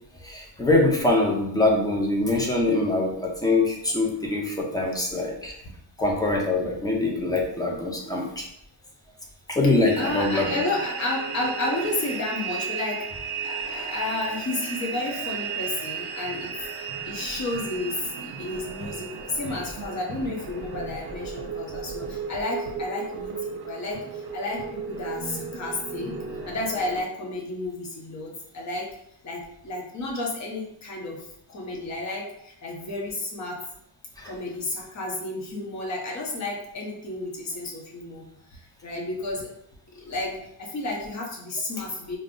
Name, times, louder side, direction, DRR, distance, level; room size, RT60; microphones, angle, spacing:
voice 1, 0.2-5.5 6.0-8.4 9.5-10.6 34.2-34.3, left 2 dB, 10° left, -1 dB, 0.3 m, -23 dB
sound 1, 9.8-27.0, right 5 dB, 60° right, 0.6 m, -35 dB
voice 2, 10.0-13.1 13.4-26.1 26.5-28.9 29.2-33.6 34.2-39.5 39.9-42.2, left 2 dB, 40° left, -1 dB, 0.7 m, -32 dB
2.5 x 2.0 x 3.5 m, 0.73 s
cardioid pair, 155°, 43 cm